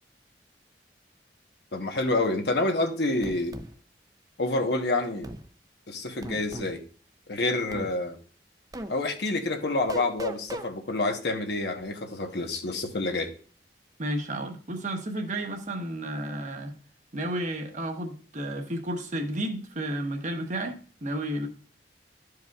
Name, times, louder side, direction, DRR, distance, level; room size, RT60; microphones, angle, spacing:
voice 1, 1.7-3.5 4.4-5.3 5.9-6.8 7.3-8.2 8.9-13.3, left 2 dB, 65° left, 1.0 m, -28 dB
sound 1, 3.2-3.7 5.2-5.4 6.2-6.7 7.7-7.9 8.7-8.9 9.9-10.7, right 1 dB, 20° right, 0.5 m, -37 dB
voice 2, 14.0-16.7 17.1-21.5, right 1 dB, 45° right, 1.0 m, -32 dB
12.5 x 4.8 x 2.3 m
head